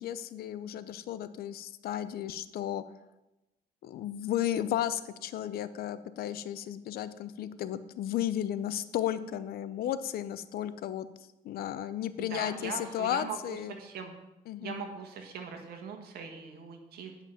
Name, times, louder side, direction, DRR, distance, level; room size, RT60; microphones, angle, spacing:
voice 1, 0.0-2.8 3.8-11.1 11.4-13.7 14.5-14.8, left 11 dB, 65° left, 13 dB, 0.6 m, -34 dB
voice 2, 12.2-14.1 14.6-17.1, right 6 dB, 65° right, 3 dB, 1.8 m, -41 dB
9.2 x 5.8 x 5.8 m, 0.96 s
cardioid pair, 110°, 17 cm